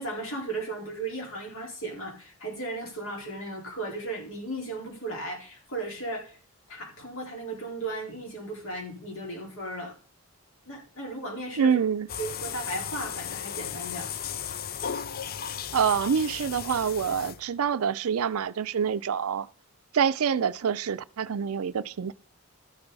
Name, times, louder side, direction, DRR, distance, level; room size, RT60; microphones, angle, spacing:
voice 1, 0.0-6.4 6.7-9.9 10.7-11.8 12.2-14.1, right 2 dB, 60° left, 4.3 m, -36 dB
voice 2, 11.6-12.1 15.7-19.5 19.9-22.1, right 7 dB, 75° right, 0.4 m, -26 dB
sound 1, 12.1-17.7, left 8 dB, 45° left, 0.4 m, -35 dB
13.5 x 6.8 x 4.1 m
head